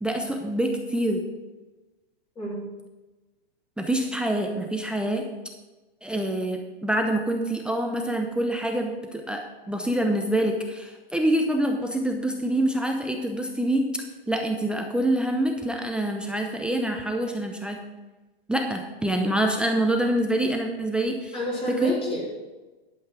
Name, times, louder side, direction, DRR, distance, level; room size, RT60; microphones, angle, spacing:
voice 1, 0.0-1.2 3.8-5.2 6.0-17.8 18.5-21.4 21.8-21.9, right 1 dB, 5° right, 3 dB, 0.7 m, -26 dB
voice 2, 21.3-22.3, equal, 20° left, -6 dB, 3.5 m, -29 dB
11.5 x 5.5 x 6.0 m, 1.2 s
hypercardioid pair, 135°, 30 cm